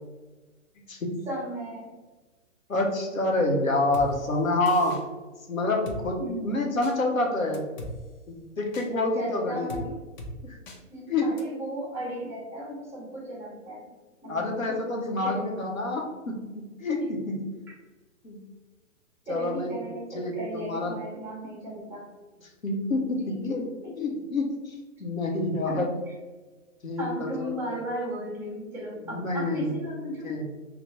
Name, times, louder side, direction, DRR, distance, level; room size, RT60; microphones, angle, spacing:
voice 1, 1.2-1.9 6.2-6.8 9.2-10.0 10.9-13.9 14.2-14.9 15.2-15.5 17.0-17.2 19.3-22.1 23.3-23.4 23.8-24.2 25.7-25.8 27.0-30.3, right 1 dB, 5° right, -4 dB, 0.6 m, -36 dB
voice 2, 2.7-5.0 5.5-7.7 8.3-9.7 10.4-10.6 11.1-11.3 14.3-17.5 18.2-18.4 19.3-19.8 20.1-20.9 22.6-23.7 24.0-25.9 26.8-27.6 29.1-29.8 30.2-30.5, left 2 dB, 85° left, 1 dB, 0.8 m, -28 dB
Drum kit, 3.9-4.1 4.7-5.0 5.9-6.0 6.8-6.9 7.5-7.9 8.7-8.9 9.7-9.8 10.2-10.3 10.7-10.8 11.4-11.5, left 1 dB, 35° left, 0.5 m, -38 dB
3.3 x 2.1 x 2.8 m, 1.2 s
figure-of-eight pair, 120°, 40 cm